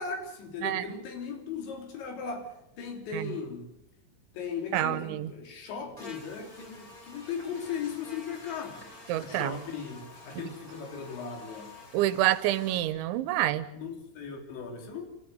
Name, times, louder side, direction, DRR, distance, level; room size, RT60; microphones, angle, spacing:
voice 1, 0.0-3.7 4.3-8.8 9.2-11.7 13.7-15.0, left 5 dB, 75° left, 4 dB, 5.4 m, -37 dB
voice 2, 4.7-5.3 9.1-9.5 11.9-13.7, right 14 dB, 90° right, 15 dB, 3.4 m, -27 dB
Buzz, 6.0-12.8, left 2 dB, 20° left, 3.7 m, -49 dB
28.0 x 14.5 x 8.0 m, 0.83 s
omnidirectional pair, 5.2 m